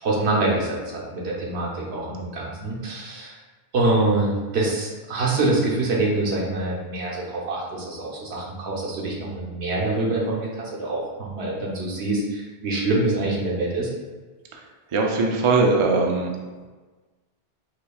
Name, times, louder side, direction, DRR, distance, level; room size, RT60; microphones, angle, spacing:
voice 1, 0.0-3.3 3.7-13.9, right 2 dB, 80° right, -4 dB, 1.1 m, -25 dB
voice 2, 14.9-16.3, right 3 dB, 55° right, 1 dB, 0.3 m, -20 dB
4.4 x 3.0 x 2.3 m, 1.3 s
omnidirectional pair, 1.1 m